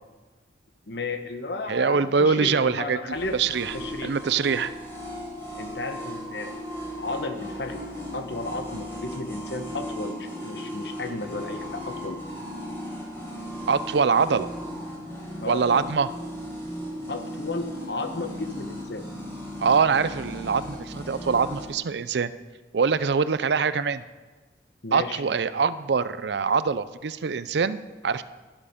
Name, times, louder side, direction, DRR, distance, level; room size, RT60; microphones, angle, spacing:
voice 1, 0.9-3.4 3.7-4.2 5.6-6.6 7.0-7.8 8.1-12.2 15.4-15.6 17.1-19.1 24.8-25.2, left 2 dB, 70° left, 7 dB, 1.1 m, -33 dB
voice 2, 1.7-3.0 3.3-3.7 4.0-4.7 13.7-14.5 15.5-16.1 19.6-22.3 22.7-24.0 24.9-28.2, right 5 dB, 70° right, 15 dB, 0.5 m, -23 dB
sound 1, 3.1-21.7, equal, 15° left, 4.2 m, -37 dB
12.5 x 12.0 x 5.1 m, 1.3 s
head